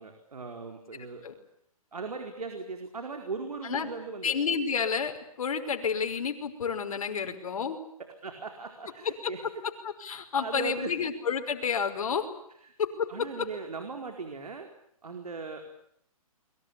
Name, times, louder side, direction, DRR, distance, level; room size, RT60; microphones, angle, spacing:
voice 1, 0.0-1.3 1.9-4.3 8.0-9.5 10.3-10.9 12.6-12.7 13.1-14.7 15.0-15.6, right 4 dB, 85° right, 5 dB, 4.6 m, -38 dB
voice 2, 4.2-7.8 9.2-9.3 9.8-12.3 12.8-13.1, left 6 dB, 65° left, 5 dB, 5.5 m, -30 dB
29.5 x 23.0 x 8.5 m, 0.70 s
hypercardioid pair, 145°, 19 cm